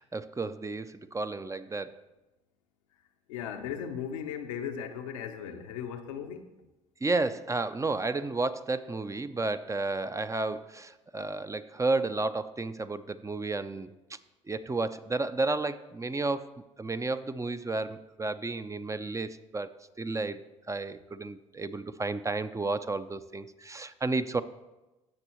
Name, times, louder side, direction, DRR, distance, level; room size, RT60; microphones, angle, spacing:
voice 1, 0.0-1.9 7.0-13.9 14.5-16.5 16.8-19.7 20.0-24.4, right 3 dB, 20° right, 12 dB, 0.5 m, -32 dB
voice 2, 3.3-6.5, left 8 dB, 85° left, 5 dB, 0.7 m, -37 dB
15.0 x 6.1 x 3.0 m, 1.0 s
hypercardioid pair, 55°, 16 cm